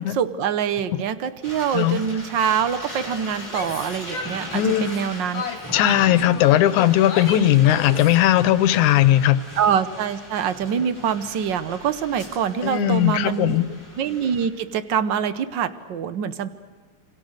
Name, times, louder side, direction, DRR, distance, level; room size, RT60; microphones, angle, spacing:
voice 1, 0.0-5.5 9.6-13.6 14.0-16.5, right 8 dB, 85° right, 12 dB, 1.0 m, -25 dB
sound 1, 1.4-14.5, equal, 5° left, 7.8 m, -39 dB
Yell, 3.4-5.0 5.3-8.2, left 5 dB, 55° left, 2.9 m, -32 dB
voice 2, 4.5-4.9 5.7-9.4 12.6-13.7, left 13 dB, 90° left, 15 dB, 2.3 m, -18 dB
28.0 x 25.5 x 6.6 m, 1.4 s
omnidirectional pair, 3.4 m